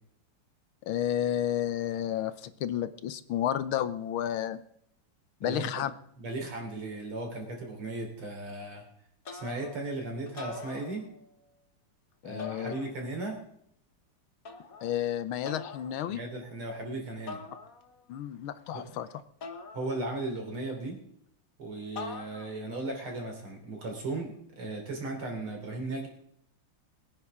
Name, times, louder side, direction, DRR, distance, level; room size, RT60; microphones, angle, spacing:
voice 1, 0.9-4.6 5.4-5.9 12.2-12.7 14.8-16.2 18.1-19.1, left 11 dB, 75° left, 13 dB, 1.6 m, -31 dB
voice 2, 5.4-5.8 6.2-8.8 9.3-11.0 12.2-13.4 16.1-17.4 18.7-19.0 19.7-21.0 21.6-26.1, right 2 dB, 75° right, 2 dB, 4.3 m, -36 dB
sound 1, 9.2-9.9 10.3-11.4 12.4-13.3 14.4-15.0 15.4-16.0 17.3-18.1 19.4-20.4 22.0-22.7, left 4 dB, 45° left, 1.5 m, -44 dB
22.5 x 9.9 x 3.7 m, 0.70 s
omnidirectional pair, 2.4 m